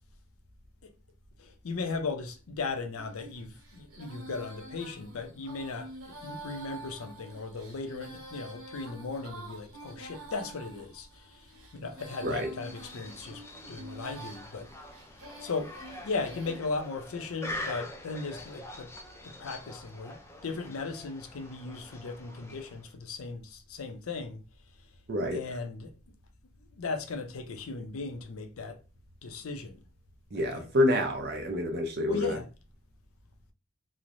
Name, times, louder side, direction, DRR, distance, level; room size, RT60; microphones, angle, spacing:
voice 1, 1.4-14.7 15.4-15.7 16.0-18.9 19.2-24.4 25.3-25.9 26.7-28.8 29.2-29.8 30.3-30.7 32.1-32.5, left 4 dB, 80° left, 0.5 m, -37 dB
Female singing, 3.0-16.6, right 2 dB, 80° right, 0.9 m, -48 dB
sound 1, 12.5-22.9, left 1 dB, 10° left, 0.3 m, -45 dB
voice 2, 25.1-25.4 30.3-32.4, left 1 dB, 50° right, 0.6 m, -28 dB
3.1 x 2.0 x 2.5 m
head